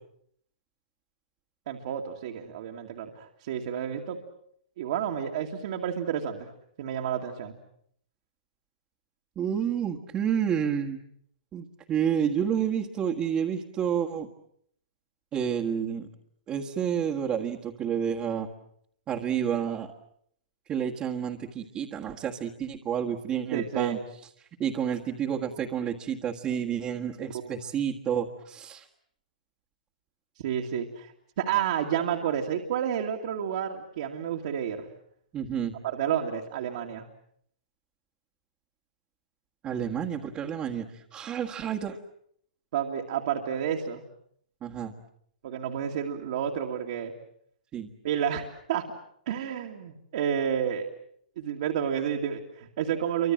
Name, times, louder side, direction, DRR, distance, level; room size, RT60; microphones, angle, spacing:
voice 1, 1.7-4.2 4.8-6.5 6.8-7.6 23.5-24.0 27.2-27.5 30.4-34.9 35.8-37.0 42.7-44.0 45.4-47.1 48.0-48.8 49.3-50.9 51.4-53.3, right 9 dB, 55° right, 1 dB, 2.4 m, -30 dB
voice 2, 9.3-11.0 11.5-14.3 15.3-16.1 16.5-18.5 19.1-19.9 20.7-24.0 24.6-28.9 35.3-35.8 39.6-40.9 41.1-42.0 44.6-44.9 47.7-47.9, right 8 dB, 25° right, -1 dB, 1.7 m, -29 dB
28.5 x 25.0 x 7.6 m, 0.68 s
hypercardioid pair, 140°, 4 cm